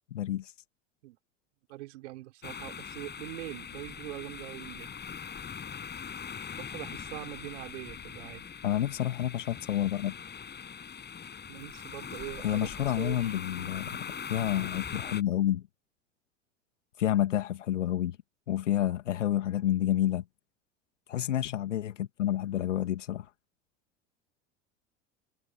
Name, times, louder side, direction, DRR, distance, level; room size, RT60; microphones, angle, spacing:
voice 1, 0.1-0.5 8.6-10.2 12.4-14.0 14.3-15.6 17.0-18.2 18.5-20.2 21.1-23.3, left 12 dB, 75° left, 2.2 m, -29 dB
voice 2, 1.7-4.9 6.6-8.5 11.5-12.7 13.0-13.4 18.8-19.0, right 18 dB, 65° right, 5.4 m, -43 dB
sound 1, 2.4-15.2, left 7 dB, 30° left, 7.3 m, -41 dB
figure-of-eight pair, 75°, 37 cm